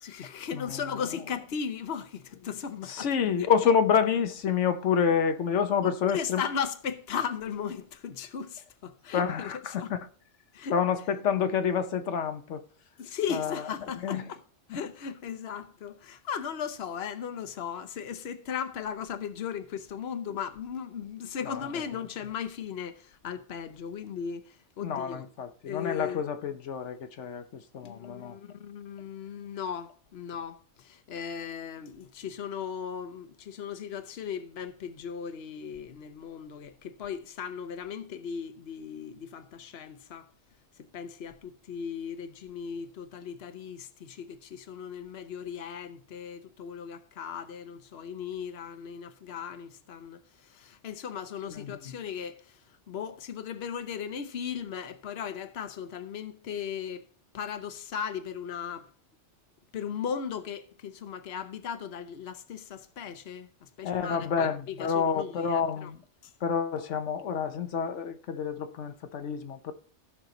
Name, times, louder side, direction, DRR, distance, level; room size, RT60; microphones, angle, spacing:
voice 1, 0.0-3.1 3.4-3.5 5.8-9.5 9.8-9.9 10.5-10.7 13.0-14.4 14.7-25.3 25.6-26.2 27.8-40.3 40.8-57.0 57.3-58.9 59.7-65.9 66.2-66.3, left 7 dB, 65° left, 1.1 m, -37 dB
voice 2, 0.5-0.8 2.9-6.4 9.1-10.1 10.7-12.6 13.3-13.6 14.0-14.3 14.7-14.8 21.4-21.9 24.8-28.4 51.5-51.7 63.8-66.0 66.4-69.7, left 7 dB, 90° left, 1.1 m, -28 dB
15.5 x 6.1 x 3.9 m
omnidirectional pair, 1.2 m